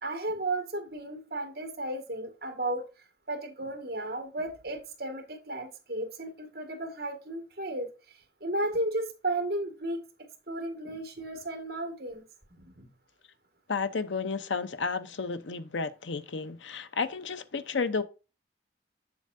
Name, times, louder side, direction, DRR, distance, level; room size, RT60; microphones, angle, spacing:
voice 1, 0.0-2.8 3.3-7.9 8.4-10.0 10.5-12.2 12.5-12.9, right 1 dB, 55° right, 1.9 m, -34 dB
voice 2, 13.7-18.0, left 4 dB, 85° left, 0.7 m, -32 dB
7.5 x 7.1 x 2.6 m
head